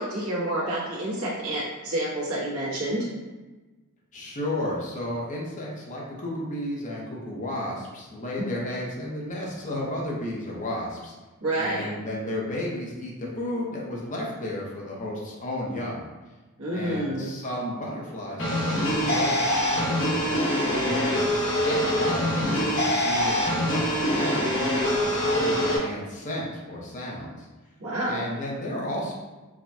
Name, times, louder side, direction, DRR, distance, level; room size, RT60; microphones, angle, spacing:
voice 1, 0.0-3.1 11.4-11.9 16.6-17.3 27.8-28.3, right 1 dB, 85° right, -7 dB, 1.2 m, -28 dB
voice 2, 4.1-11.1 11.5-16.0 16.7-20.4 20.7-24.5 24.9-27.5 28.1-29.1, left 1 dB, 35° left, -3 dB, 0.8 m, -33 dB
sound 1, 18.4-25.8, equal, 65° left, 1.2 m, -24 dB
4.9 x 2.2 x 2.7 m, 1.2 s
head